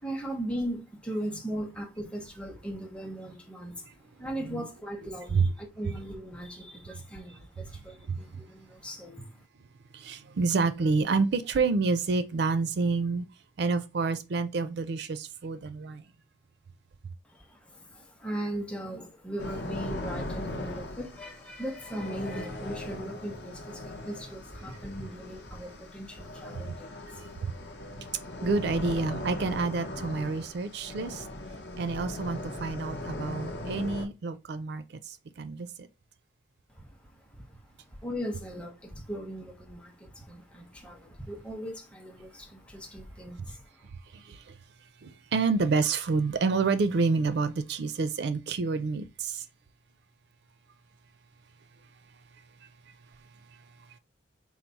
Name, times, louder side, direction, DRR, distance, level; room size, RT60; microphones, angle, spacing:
voice 1, 0.0-3.9 4.2-9.3 17.3-27.3 28.3-28.4 36.7-37.4 37.9-43.8, right 1 dB, 5° left, 0.7 m, -38 dB
voice 2, 9.9-13.3 13.6-16.0 27.4-27.5 28.4-31.2 31.8-35.9 44.1-44.5 45.0-49.4, right 4 dB, 60° right, 0.4 m, -28 dB
sound 1, 19.4-34.1, left 1 dB, 60° left, 0.8 m, -39 dB
4.5 x 2.0 x 3.9 m
head